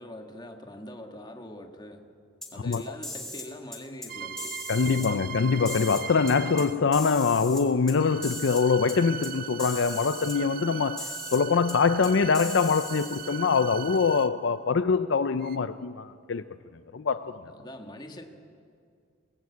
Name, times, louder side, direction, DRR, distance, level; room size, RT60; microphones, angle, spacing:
voice 1, 0.0-2.0 2.5-5.2 17.2-18.2, left 1 dB, 20° left, 1.7 m, -43 dB
sound 1, 2.4-3.5 3.7-4.1 4.4-5.1 5.6-6.6 6.9-7.9 8.2-8.6 8.9-9.0 9.2-9.3 9.6-10.4 11.0-11.4 11.7-11.8 12.0-13.3, left 1 dB, 5° left, 2.7 m, -38 dB
sound 2, 4.1-6.9 7.9-14.5 15.4-15.6, right 9 dB, 50° right, 0.6 m, -39 dB
voice 2, 4.7-16.4 16.9-17.4, left 5 dB, 65° left, 0.5 m, -24 dB
23.0 x 19.0 x 8.4 m
head